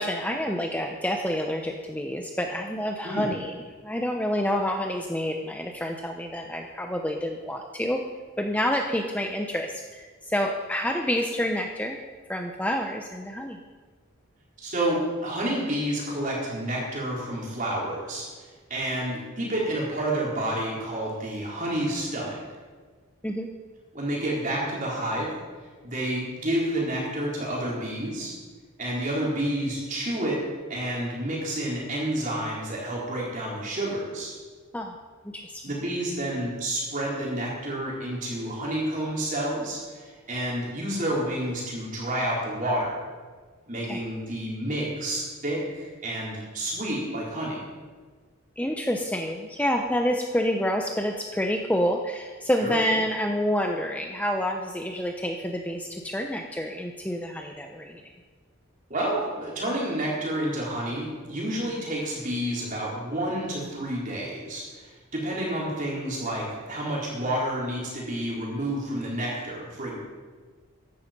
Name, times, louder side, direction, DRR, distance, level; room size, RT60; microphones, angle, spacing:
voice 1, 0.0-3.5 3.8-8.0 8.4-12.0 12.3-13.6 23.2-23.5 34.7-34.9 35.3-35.6 43.8-44.0 48.6-58.0, equal, 5° left, 3 dB, 0.7 m, -28 dB
voice 2, 14.6-18.2 18.7-22.4 23.9-25.3 25.8-28.3 28.8-30.4 30.7-34.3 35.6-43.0 43.7-47.6 52.6-52.7 58.9-69.9, right 1 dB, 35° right, -4 dB, 4.5 m, -29 dB
15.0 x 11.5 x 5.3 m, 1.5 s
head